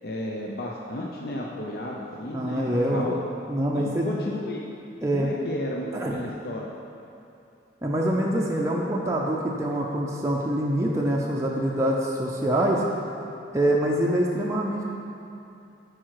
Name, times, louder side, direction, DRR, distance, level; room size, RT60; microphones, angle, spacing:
voice 1, 0.0-3.2 3.7-4.6 5.1-6.7, left 1 dB, 55° left, -2 dB, 0.6 m, -33 dB
voice 2, 2.3-3.1 3.5-4.1 5.0-5.3 5.9-6.2 7.8-12.8 13.5-14.8, right 1 dB, 15° right, -3 dB, 0.5 m, -25 dB
8.7 x 4.8 x 4.7 m, 2.7 s
head